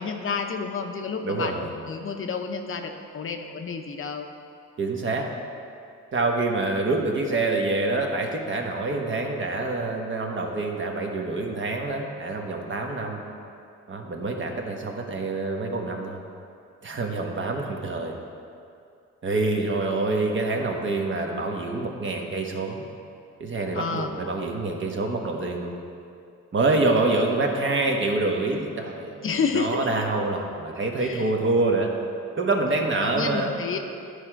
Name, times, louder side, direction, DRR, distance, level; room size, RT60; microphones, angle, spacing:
voice 1, 0.0-4.3 23.7-24.1 29.2-30.0 31.0-31.3 33.0-33.8, left 5 dB, 45° left, 5 dB, 0.7 m, -30 dB
voice 2, 1.2-1.7 4.8-5.2 6.1-13.2 13.9-16.2 16.8-18.1 19.2-22.8 23.4-25.7 26.5-29.3 29.5-31.9 32.4-33.5, right 2 dB, 40° right, 2 dB, 1.1 m, -26 dB
11.0 x 4.9 x 4.5 m, 2.5 s
cardioid pair, 90°, 30 cm